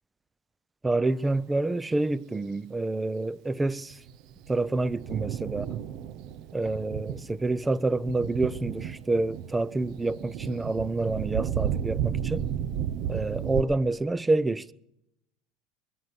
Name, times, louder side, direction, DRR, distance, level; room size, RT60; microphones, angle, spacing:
voice 1, 0.8-4.0 4.5-5.8 6.5-12.4 13.1-14.7, right 2 dB, 10° right, 0.5 m, -28 dB
Thunder, 3.9-13.6, right 9 dB, 55° right, 0.8 m, -33 dB
22.5 x 7.8 x 8.2 m
supercardioid pair, 130°, 0 cm